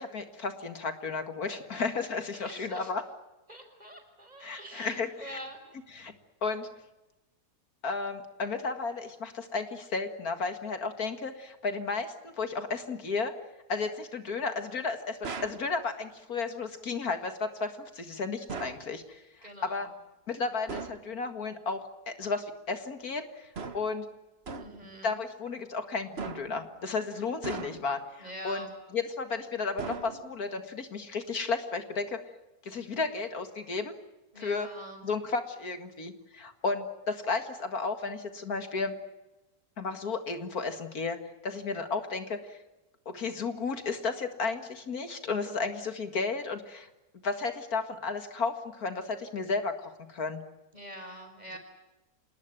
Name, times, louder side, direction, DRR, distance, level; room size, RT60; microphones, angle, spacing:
voice 1, 0.0-3.0 4.4-5.4 5.9-6.1 6.4-6.7 7.8-13.3 13.7-19.2 19.6-19.9 20.3-23.5 23.7-24.1 25.0-28.7 28.9-32.2 32.6-33.9 34.4-34.7 35.0-38.9 39.8-41.2 41.4-42.6 43.1-46.9 47.2-50.4, left 4 dB, 65° left, 8 dB, 2.4 m, -33 dB
voice 2, 2.3-2.9 3.5-5.6 19.4-19.9 24.6-25.1 28.2-28.7 34.3-35.1 50.7-51.6, equal, 25° right, 6 dB, 5.7 m, -45 dB
sound 1, 15.2-15.7 18.5-18.9 20.7-21.1 23.5-24.0 24.5-24.9 26.2-26.6 27.4-28.0 29.8-30.4, right 4 dB, 40° right, 1.6 m, -39 dB
27.0 x 20.5 x 9.1 m, 1.0 s
omnidirectional pair, 1.7 m